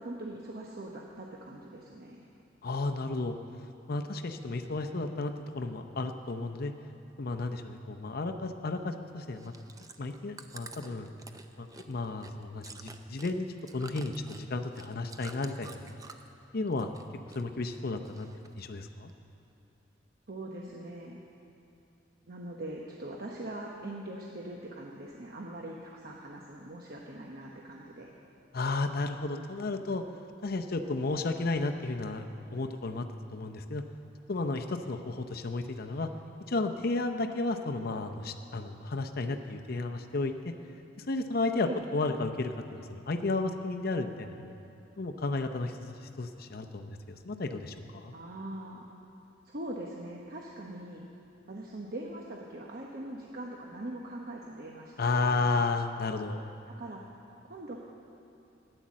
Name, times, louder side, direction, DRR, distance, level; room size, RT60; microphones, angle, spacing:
voice 1, 0.0-2.3 20.3-21.2 22.3-28.1 41.6-41.8 48.1-48.8 49.4-51.1 51.5-55.7 56.7-57.0 57.4-57.8, right 1 dB, 50° right, -1 dB, 1.0 m, -42 dB
voice 2, 2.6-3.4 3.9-6.7 7.2-9.5 10.0-11.1 11.6-15.9 16.5-16.9 17.3-18.3 18.6-19.1 28.5-30.0 30.4-33.1 33.3-33.8 34.3-36.1 36.5-40.5 41.0-44.5 45.0-48.2 55.0-56.4, left 3 dB, 50° left, 6 dB, 0.7 m, -33 dB
Chewing mastication, 9.3-16.4 16.7-17.4 17.7-18.6 19.1-19.2, right 3 dB, 20° right, 0.5 m, -49 dB
14.5 x 10.0 x 7.4 m, 2.8 s
head